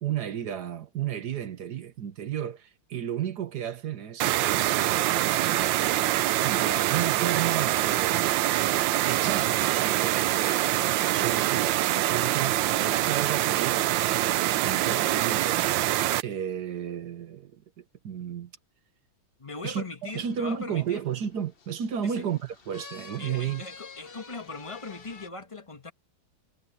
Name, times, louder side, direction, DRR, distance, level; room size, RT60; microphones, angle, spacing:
voice 1, 0.0-5.7 6.4-8.7 9.1-15.9 16.2-18.5 19.6-23.6, right 9 dB, 55° right, 1.5 m, -33 dB
sound 1, 4.2-16.2, right 15 dB, 75° right, 1.3 m, -25 dB
voice 2, 19.4-21.0 22.0-22.2 23.2-25.9, left 3 dB, 15° left, 1.5 m, -40 dB
sound 2, 20.1-25.3, left 5 dB, 35° left, 1.1 m, -49 dB
omnidirectional pair, 2.2 m